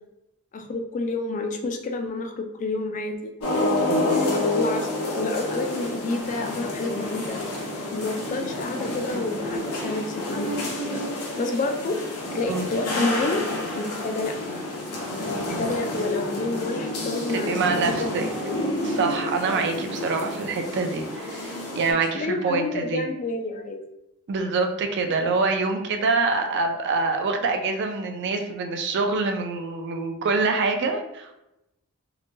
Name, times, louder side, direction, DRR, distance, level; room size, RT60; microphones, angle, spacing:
voice 1, 0.5-3.3 4.1-4.9 5.2-7.4 7.9-11.1 11.4-13.4 13.7-14.4 15.1-17.6 17.9-18.1 18.4-18.7 19.4-19.6 22.1-23.8, left 2 dB, 35° left, 4 dB, 0.3 m, -29 dB
sound 1, 3.4-21.9, left 1 dB, 70° left, 0.7 m, -29 dB
voice 2, 3.9-4.2 12.5-12.7 17.3-18.3 18.8-23.1 24.3-31.4, right 4 dB, 50° right, 5 dB, 0.4 m, -25 dB
2.9 x 2.1 x 2.6 m, 0.89 s
head